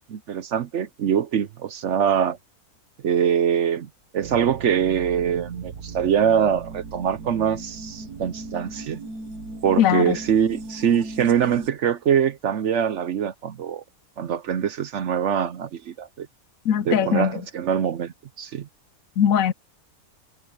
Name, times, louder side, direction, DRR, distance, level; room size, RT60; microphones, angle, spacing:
voice 1, 0.1-2.4 3.0-9.0 9.6-13.8 14.2-16.3 16.9-18.7, right 8 dB, 60° right, 0.9 m, -23 dB
sound 1, 4.2-11.7, right 3 dB, 90° right, 1.9 m, -37 dB
voice 2, 9.8-10.2 16.7-17.3 19.2-19.5, left 9 dB, 70° left, 1.0 m, -20 dB
omnidirectional pair, 1.6 m